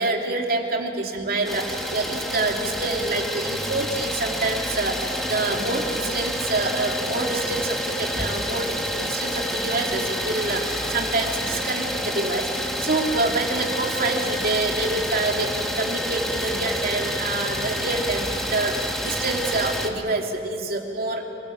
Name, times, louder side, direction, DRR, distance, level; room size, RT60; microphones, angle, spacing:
voice 1, 0.0-21.2, right 2 dB, 55° right, 1 dB, 2.8 m, -26 dB
Idling, 1.4-19.9, equal, ahead, 2.1 m, -28 dB
26.0 x 20.5 x 8.6 m, 2.9 s
head